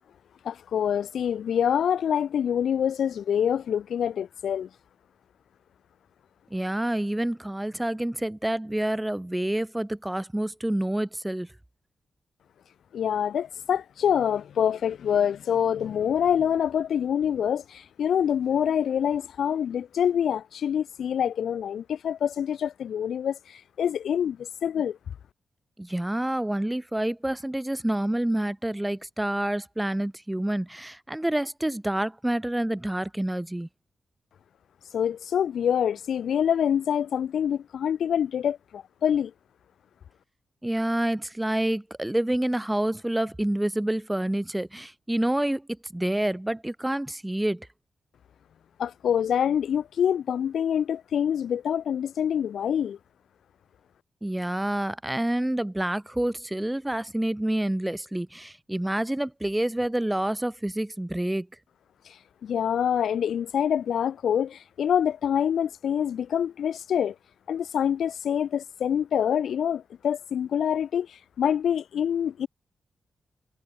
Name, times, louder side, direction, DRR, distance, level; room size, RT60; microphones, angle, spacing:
voice 1, 0.4-4.7 12.9-25.0 34.9-39.3 48.8-53.0 62.1-62.2 62.4-67.2 67.5-72.5, left 8 dB, 90° left, 5.2 m, -26 dB
voice 2, 6.5-11.5 25.8-33.7 40.6-45.7 45.9-47.7 54.2-61.5, right 1 dB, 5° right, 5.6 m, -28 dB
wide cardioid pair, 165°, 0 cm